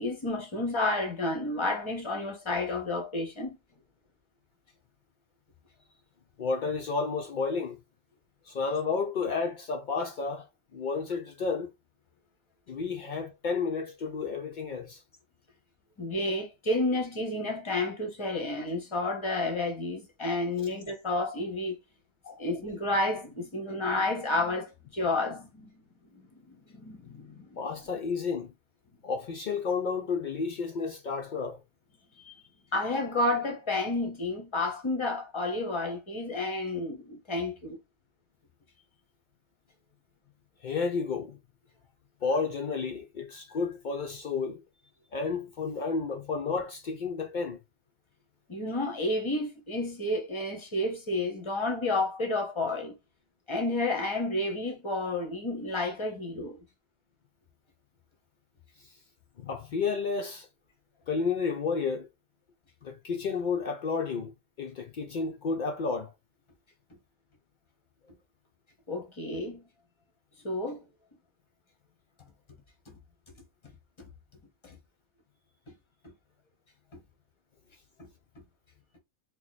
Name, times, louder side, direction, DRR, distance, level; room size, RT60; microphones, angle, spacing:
voice 1, 0.0-3.6 16.0-21.8 22.4-25.7 26.1-27.6 32.3-32.4 32.7-37.8 48.5-53.0 53.5-56.6 68.9-69.6 70.4-70.8 74.6-74.8 76.9-77.0, left 2 dB, 30° left, 0.6 m, -31 dB
voice 2, 6.4-7.8 8.5-10.5 10.7-11.7 12.7-15.0 20.6-20.7 22.2-22.4 27.6-28.5 29.0-31.6 40.6-41.4 42.2-44.6 45.1-47.6 59.4-60.5 61.1-62.1 62.8-64.3 64.6-66.1, left 4 dB, 75° left, 0.4 m, -31 dB
2.9 x 2.1 x 4.0 m
omnidirectional pair, 1.4 m